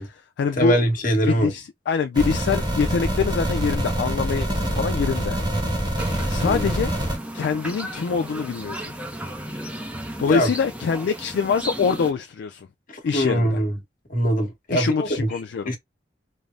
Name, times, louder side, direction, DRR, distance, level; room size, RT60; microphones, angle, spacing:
voice 1, 0.0-0.8 1.2-5.4 6.3-6.9 7.3-8.9 10.2-12.7 13.0-13.6 14.7-15.7, left 5 dB, 65° left, 0.3 m, -24 dB
voice 2, 0.6-1.5 6.4-6.7 10.3-10.5 13.1-13.8 14.1-15.3 15.7-15.8, equal, 50° left, 1.2 m, -22 dB
sound 1, 2.1-7.2, right 1 dB, 25° right, 0.9 m, -25 dB
sound 2, 6.0-12.1, right 1 dB, 5° right, 0.5 m, -35 dB
3.2 x 2.0 x 2.5 m
head